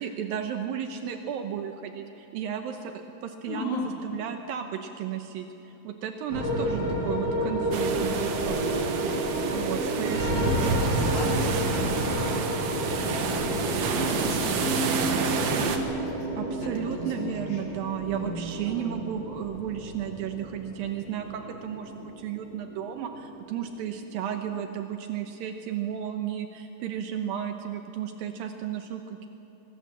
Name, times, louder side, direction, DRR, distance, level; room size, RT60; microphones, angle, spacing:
voice 1, 0.0-2.9 3.2-5.5 5.8-8.6 9.5-10.8 16.4-29.3, right 9 dB, 75° right, 6 dB, 2.7 m, -33 dB
voice 2, 3.5-3.9 6.7-7.0 10.2-12.4 12.8-17.6 18.1-19.1, left 1 dB, 75° left, -3 dB, 5.4 m, -38 dB
sound 1, 6.3-24.7, right 1 dB, 25° right, 8.2 m, -30 dB
sound 2, 7.7-15.8, right 6 dB, 60° right, 2.4 m, -30 dB
25.0 x 21.0 x 7.4 m, 3.0 s
omnidirectional pair, 4.3 m